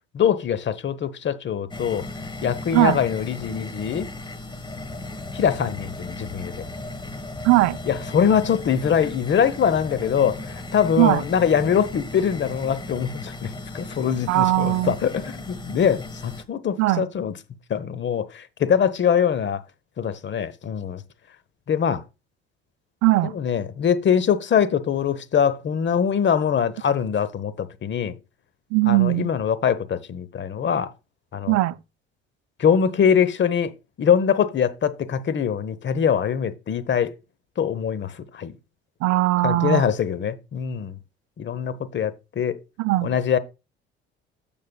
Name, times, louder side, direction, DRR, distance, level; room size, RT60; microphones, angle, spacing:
voice 1, 0.1-2.0 2.4-4.1 5.3-6.5 7.9-17.3 17.7-19.6 20.0-21.0 21.7-22.0 23.3-28.1 28.8-30.9 31.3-31.6 32.6-33.7 34.0-37.1 37.6-38.5 39.4-41.0 41.4-42.6 43.0-43.4, left 8 dB, 40° left, 1.0 m, -23 dB
sound 1, 1.7-16.4, left 2 dB, 15° left, 1.3 m, -36 dB
voice 2, 7.4-7.8 11.0-11.2 14.3-14.9 16.8-17.1 23.0-23.3 28.7-29.3 31.5-31.8 39.0-39.8 42.8-43.2, right 18 dB, 60° right, 0.5 m, -19 dB
14.0 x 5.3 x 2.3 m
hypercardioid pair, 60°, 29 cm